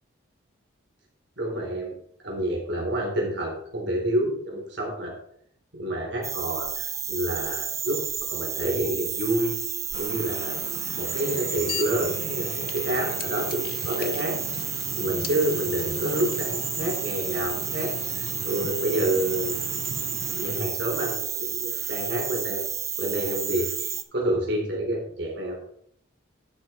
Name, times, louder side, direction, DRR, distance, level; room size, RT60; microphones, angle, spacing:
voice 1, 1.4-1.9 2.2-5.2 5.7-8.0 8.3-9.6 9.9-10.6 11.0-14.4 15.0-19.6 20.3-22.6 23.0-25.6, right 1 dB, 60° right, -1 dB, 3.9 m, -28 dB
sound 1, 6.2-24.0, right 7 dB, 15° right, 0.4 m, -31 dB
sound 2, 9.9-20.6, left 4 dB, 45° left, 0.6 m, -38 dB
11.5 x 7.0 x 4.4 m, 0.67 s
head